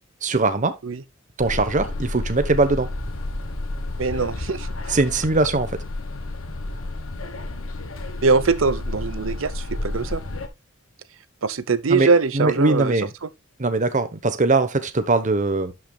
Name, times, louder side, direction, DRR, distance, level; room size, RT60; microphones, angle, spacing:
voice 1, 0.2-0.7 1.4-2.9 4.9-5.7 11.9-12.1 12.3-13.1 13.6-15.7, right 3 dB, 35° right, 1.0 m, -21 dB
sound 1, 1.4-10.5, left 2 dB, 75° left, 1.3 m, -31 dB
voice 2, 4.0-4.7 8.2-10.2 11.4-13.3, right 4 dB, 65° right, 0.7 m, -22 dB
11.5 x 6.0 x 2.3 m
head